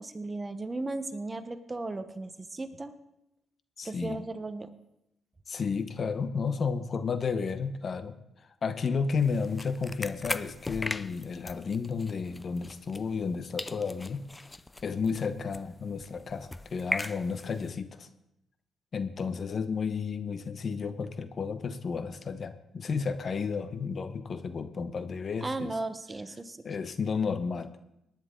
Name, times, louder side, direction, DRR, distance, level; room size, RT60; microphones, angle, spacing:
voice 1, 0.0-2.9 3.8-4.7 25.4-26.6, right 2 dB, 20° right, 10 dB, 0.9 m, -36 dB
voice 2, 3.8-4.2 5.5-8.1 8.6-14.2 14.8-18.1 18.9-25.7 26.6-27.7, left 5 dB, 45° left, 11 dB, 0.9 m, -32 dB
sound 1, 9.2-13.3 13.6-17.7, left 2 dB, 15° left, 0.5 m, -39 dB
19.0 x 10.5 x 3.8 m, 0.84 s
cardioid pair, 90°, 0 cm